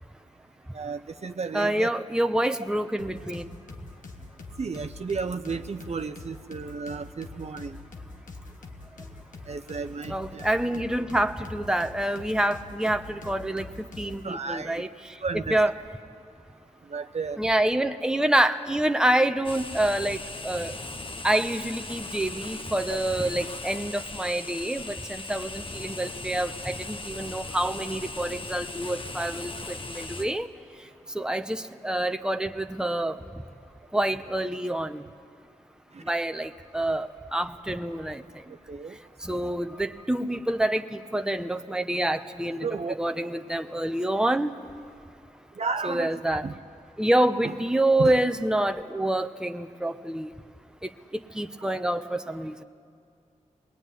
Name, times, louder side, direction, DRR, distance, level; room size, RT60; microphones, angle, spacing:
voice 1, 0.7-1.9 4.6-7.8 9.5-10.5 14.2-14.8 15.2-15.6 16.9-17.4 22.9-23.0 35.9-36.0 37.2-37.3 38.7-39.0 39.7-39.9 42.6-43.0 45.6-46.6 47.4-47.5 48.0-48.1, right 4 dB, 55° right, 9 dB, 0.8 m, -33 dB
voice 2, 1.5-3.4 10.1-15.7 17.4-20.7 21.2-30.5 31.1-33.2 33.9-35.0 36.1-38.2 39.2-42.7 43.0-44.5 45.8-46.4 47.0-50.3 50.8-52.5, right 1 dB, 5° right, 7 dB, 1.0 m, -27 dB
sound 1, 3.0-14.3, left 3 dB, 80° left, 1.4 m, -45 dB
sound 2, 19.4-30.2, left 3 dB, 40° left, 1.2 m, -38 dB
21.0 x 20.0 x 9.4 m, 2.4 s
cardioid pair, 55°, 13 cm